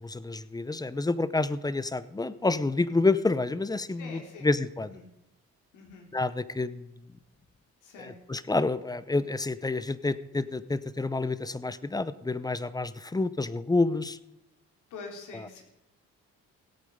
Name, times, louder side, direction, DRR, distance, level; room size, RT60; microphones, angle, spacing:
voice 1, 0.0-4.9 6.1-6.8 8.0-14.2, left 3 dB, 15° left, 16 dB, 0.6 m, -28 dB
voice 2, 4.0-5.1 5.7-6.1 7.8-8.2 14.9-15.6, left 4 dB, 80° left, 2 dB, 3.3 m, -45 dB
17.0 x 8.5 x 5.3 m, 0.89 s
cardioid pair, 90°, 30 cm